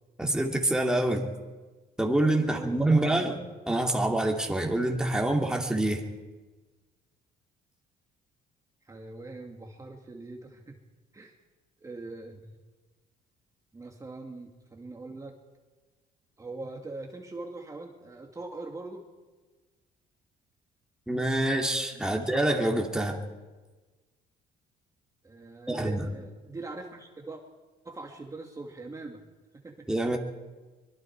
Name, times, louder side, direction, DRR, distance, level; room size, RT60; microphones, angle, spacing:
voice 1, 0.2-1.3 2.0-3.4 3.7-6.0 21.1-23.2 25.7-26.1 29.9-30.2, right 1 dB, 5° right, 1 dB, 2.7 m, -26 dB
voice 2, 2.4-3.4 8.8-10.8 11.1-11.3 11.8-12.6 13.7-15.4 16.4-19.1 21.9-22.3 25.2-27.4 27.8-29.2 29.6-30.0, right 3 dB, 20° right, 1 dB, 2.3 m, -42 dB
24.0 x 23.0 x 4.7 m, 1.3 s
cardioid pair, 110°, 17 cm